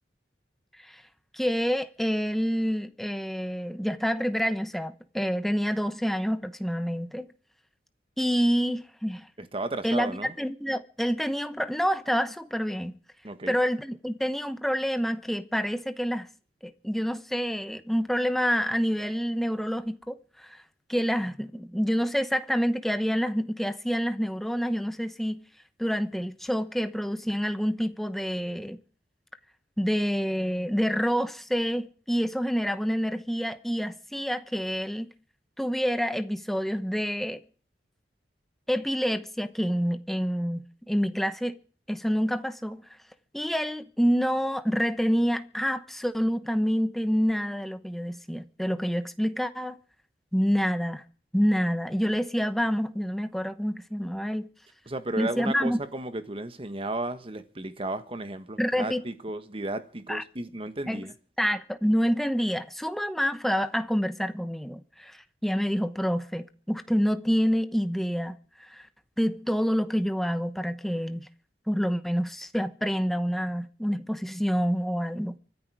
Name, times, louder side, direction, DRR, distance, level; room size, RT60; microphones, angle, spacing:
voice 1, 1.3-7.3 8.2-9.3 9.8-13.0 13.5-16.3 16.6-20.6 20.9-25.4 25.8-28.8 29.8-35.1 35.6-37.4 38.7-41.6 41.9-42.8 43.3-49.8 50.3-51.0 51.3-54.5 55.2-55.8 58.6-59.0 60.1-60.2 60.9-61.0 61.4-68.9 69.2-71.3 71.7-75.4, equal, ahead, 1.0 m, -27 dB
voice 2, 9.4-10.3 13.2-13.5 54.9-61.1, right 2 dB, 30° right, 1.4 m, -34 dB
24.5 x 10.0 x 4.9 m
head